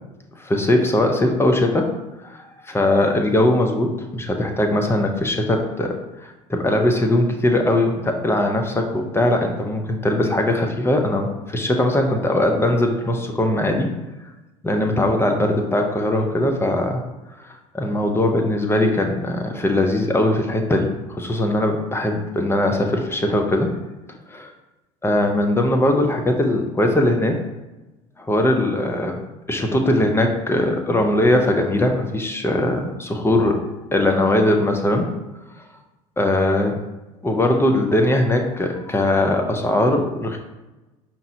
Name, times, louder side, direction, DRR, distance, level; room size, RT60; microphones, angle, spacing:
voice 1, 0.4-1.9 2.2-13.9 14.6-17.0 17.4-23.7 24.3-24.5 25.0-27.4 28.2-33.7 33.9-35.1 36.2-36.8 37.2-40.4, left 1 dB, 15° left, 3 dB, 0.7 m, -20 dB
5.2 x 3.0 x 2.7 m, 1.0 s
hypercardioid pair, 70°, 18 cm